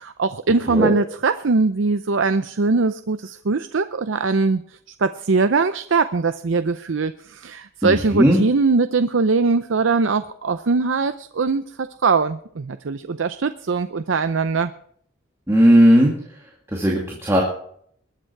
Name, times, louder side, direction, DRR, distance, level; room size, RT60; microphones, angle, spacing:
voice 1, 0.0-4.6 5.0-14.7, right 4 dB, 80° right, 10 dB, 0.6 m, -21 dB
voice 2, 7.8-8.4 15.5-16.1 16.7-17.4, equal, 15° right, -2 dB, 2.5 m, -16 dB
22.0 x 9.1 x 4.7 m, 0.63 s
head